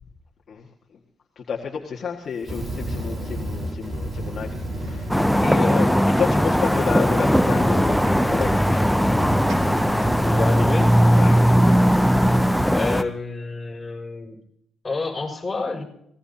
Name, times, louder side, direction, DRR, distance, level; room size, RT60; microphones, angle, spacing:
voice 1, 0.5-1.0 1.3-9.1 11.1-11.5, left 6 dB, 50° left, -2 dB, 1.8 m, -31 dB
Fire, 2.4-5.5 6.0-13.0, right 1 dB, 30° right, 4.4 m, -32 dB
sound 1, 4.7-11.4, right 6 dB, 85° right, 2.3 m, -47 dB
sound 2, 5.1-13.0, equal, ahead, 0.5 m, -18 dB
voice 2, 10.3-10.9 12.7-14.4 14.8-15.8, left 3 dB, 25° left, 0 dB, 5.9 m, -29 dB
26.0 x 18.5 x 2.8 m, 0.75 s
cardioid pair, 90°, 0 cm